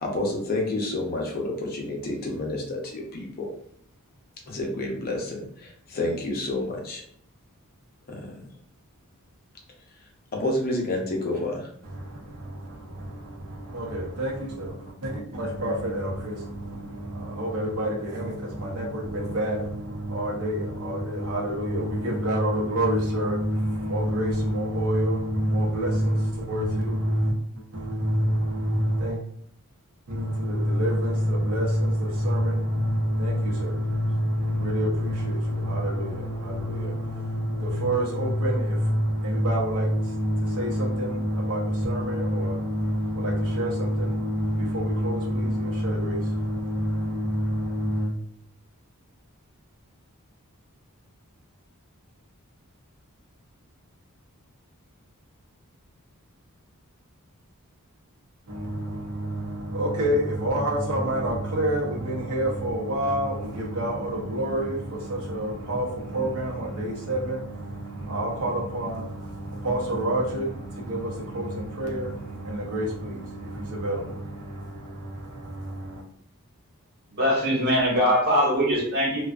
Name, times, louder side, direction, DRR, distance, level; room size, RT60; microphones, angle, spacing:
voice 1, 0.0-3.5 4.5-7.0 8.1-8.3 10.3-11.7, left 2 dB, 45° left, 0 dB, 0.5 m, -29 dB
voice 2, 11.8-29.2 30.1-48.1 58.5-76.0, equal, 75° right, -3 dB, 0.7 m, -27 dB
voice 3, 77.1-79.2, equal, 45° right, -5 dB, 1.1 m, -22 dB
2.4 x 2.3 x 2.3 m, 0.66 s
head